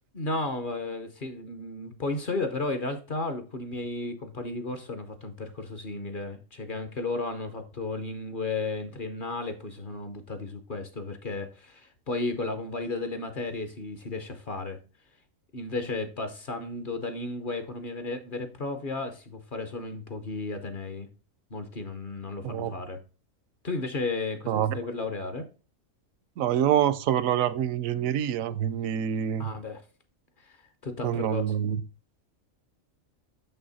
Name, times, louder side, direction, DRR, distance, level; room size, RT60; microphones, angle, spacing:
voice 1, 0.1-14.8 15.5-21.1 21.5-23.0 23.6-25.5 29.4-29.8 30.4-31.4, left 3 dB, 45° left, 0.8 m, -34 dB
voice 2, 26.4-29.5 31.0-31.8, right 10 dB, 80° right, 1.0 m, -26 dB
6.6 x 5.6 x 4.0 m
omnidirectional pair, 1.4 m